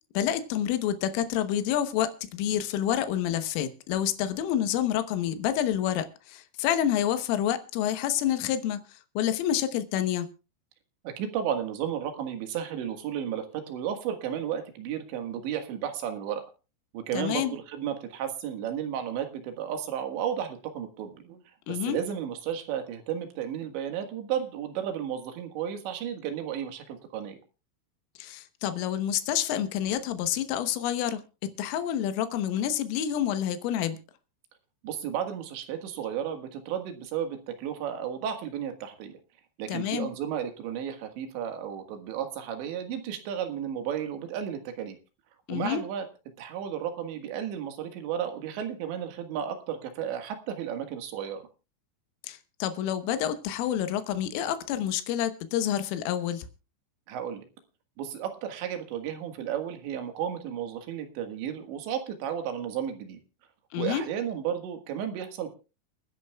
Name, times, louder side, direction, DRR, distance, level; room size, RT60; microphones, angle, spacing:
voice 1, 0.2-8.8 9.2-10.3 17.1-17.5 21.7-22.0 28.2-34.0 39.7-40.1 45.5-45.8 52.2-56.5 63.7-64.1, left 10 dB, 85° left, 10 dB, 3.7 m, -28 dB
voice 2, 11.1-16.4 16.9-21.4 21.7-27.4 34.8-39.2 39.6-45.0 45.5-46.1 46.4-51.4 57.1-57.5 58.0-63.2 63.8-65.5, right 9 dB, 70° right, 7 dB, 3.7 m, -33 dB
28.5 x 10.0 x 2.3 m, 0.31 s
omnidirectional pair, 5.7 m